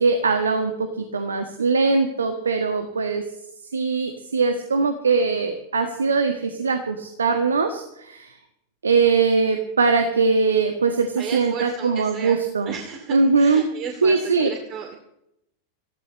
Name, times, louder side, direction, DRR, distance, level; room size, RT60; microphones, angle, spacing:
voice 1, 0.0-3.2 3.7-8.3 8.8-12.7 13.1-13.6 14.0-14.5, right 4 dB, 70° right, 6 dB, 1.7 m, -21 dB
voice 2, 11.2-12.4 12.7-15.0, right 7 dB, 35° right, 3 dB, 2.6 m, -34 dB
25.0 x 16.0 x 3.2 m, 0.79 s
figure-of-eight pair, 90°, 0 cm